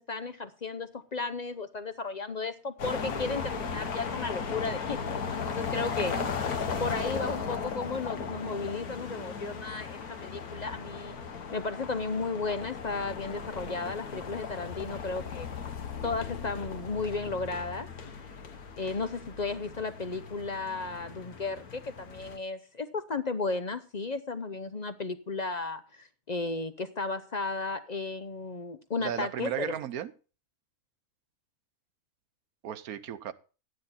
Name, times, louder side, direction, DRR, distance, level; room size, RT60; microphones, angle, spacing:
voice 1, 0.0-6.1 6.8-11.2 11.5-15.5 16.0-17.9 18.8-29.8, left 3 dB, 45° left, 0.5 m, -34 dB
sound 1, 2.8-22.4, left 6 dB, 75° left, 1.6 m, -37 dB
voice 2, 6.0-6.3 29.0-30.1 32.6-33.3, right 10 dB, 75° right, 1.3 m, -35 dB
12.0 x 9.6 x 4.2 m
omnidirectional pair, 1.6 m